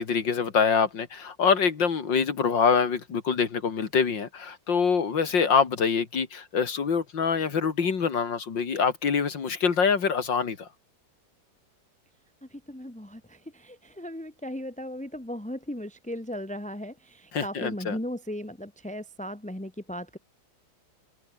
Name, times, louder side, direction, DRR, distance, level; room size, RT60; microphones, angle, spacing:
voice 1, 0.0-10.7 17.3-18.0, left 6 dB, 85° left, 3.0 m, -25 dB
voice 2, 12.5-20.2, equal, 5° left, 2.2 m, -37 dB
omnidirectional pair, 1.9 m